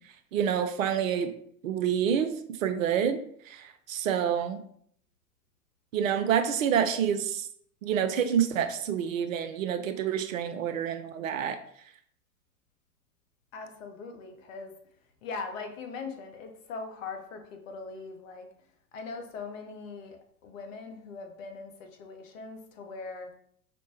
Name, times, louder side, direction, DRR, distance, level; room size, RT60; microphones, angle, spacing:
voice 1, 0.3-1.3 1.6-3.2 3.5-4.6 5.9-7.5 7.8-11.6, right 8 dB, 60° right, 9 dB, 0.5 m, -28 dB
voice 2, 13.5-14.8 15.2-18.5 18.9-23.3, left 4 dB, 55° left, 5 dB, 0.8 m, -41 dB
5.1 x 2.1 x 2.9 m, 0.66 s
figure-of-eight pair, 90°, 47 cm